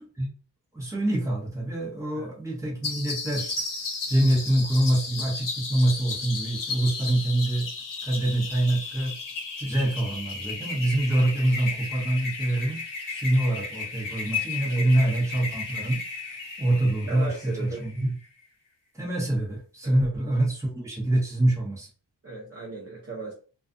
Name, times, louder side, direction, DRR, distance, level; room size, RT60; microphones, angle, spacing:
voice 1, 0.7-3.5 4.1-7.7 8.0-9.2 9.6-16.0 16.6-18.1 18.9-21.9, right 1 dB, 5° right, -4 dB, 1.0 m, -25 dB
sound 1, 2.8-18.1, left 4 dB, 45° left, 0.7 m, -34 dB
voice 2, 17.1-17.8 19.8-20.0 22.2-23.3, right 3 dB, 35° right, -4 dB, 0.6 m, -37 dB
2.4 x 2.3 x 2.5 m, 0.38 s
wide cardioid pair, 160°, 45 cm